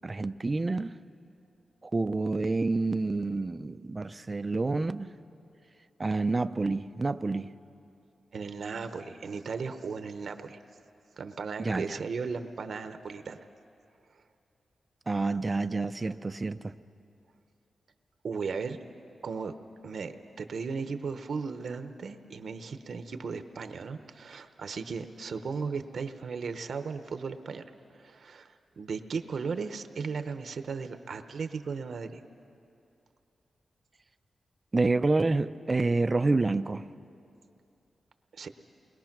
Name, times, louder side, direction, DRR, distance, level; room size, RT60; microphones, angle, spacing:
voice 1, 0.0-1.0 1.8-5.1 6.0-7.5 11.6-12.0 15.1-16.7 34.7-36.8, right 3 dB, 25° right, 0.4 m, -28 dB
voice 2, 8.3-10.6 11.2-13.4 18.2-18.8 19.2-19.5 19.8-20.1 20.4-27.6 27.9-32.2 38.3-38.5, right 5 dB, 55° right, 0.8 m, -36 dB
29.0 x 21.0 x 6.0 m
wide cardioid pair, 170°, 0 cm